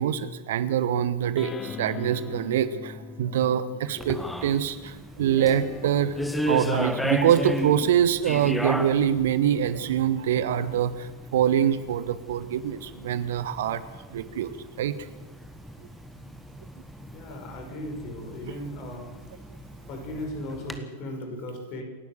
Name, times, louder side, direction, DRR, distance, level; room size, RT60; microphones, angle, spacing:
voice 1, 0.0-6.2 6.5-13.8 14.1-14.9, right 9 dB, 55° right, 14 dB, 1.1 m, -25 dB
sound 1, 1.4-4.7 5.3-12.1, left 5 dB, 20° left, 1.2 m, -44 dB
sound 2, 4.0-20.8, equal, 5° left, 1.7 m, -35 dB
voice 2, 17.1-19.1 19.9-21.8, left 1 dB, 40° left, 4 dB, 5.9 m, -36 dB
28.0 x 12.0 x 8.1 m, 1.3 s
figure-of-eight pair, 90°, 0 cm